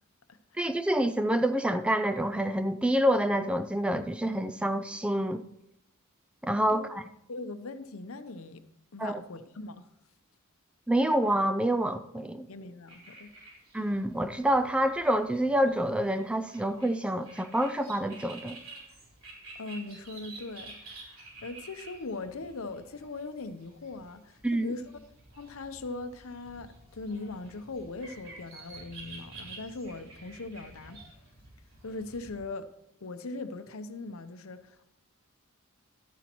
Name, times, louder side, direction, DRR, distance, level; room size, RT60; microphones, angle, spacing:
voice 1, 0.6-5.4 6.4-7.0 9.0-9.2 10.9-12.5 13.7-18.6 24.4-24.7, right 1 dB, 5° right, 0.3 m, -27 dB
voice 2, 7.3-8.6 8.9-9.9 12.5-13.3 19.5-24.9 25.4-31.0 31.8-32.7 33.0-34.9, left 3 dB, 70° left, 0.8 m, -40 dB
sound 1, 12.9-32.4, right 3 dB, 75° right, 4.1 m, -50 dB
12.5 x 10.0 x 3.0 m
head